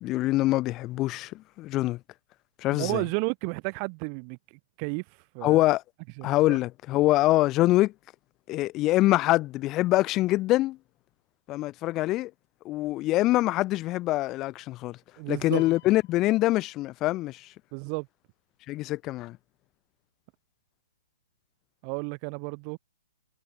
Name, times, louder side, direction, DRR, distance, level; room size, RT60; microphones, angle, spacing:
voice 1, 0.0-2.0 2.6-3.0 5.4-5.8 6.2-7.9 8.5-10.8 11.5-12.3 12.6-15.0 15.3-17.5 18.7-19.4, left 17 dB, 25° left, 1.6 m, -24 dB
voice 2, 2.7-4.4 4.8-5.0 5.3-5.6 6.2-6.6 15.2-15.6 17.7-18.1 21.8-22.8, right 40 dB or more, 35° right, 0.7 m, -32 dB
sound 1, 15.5-17.2, left 14 dB, 50° left, 4.5 m, -53 dB
hypercardioid pair, 140°, 0 cm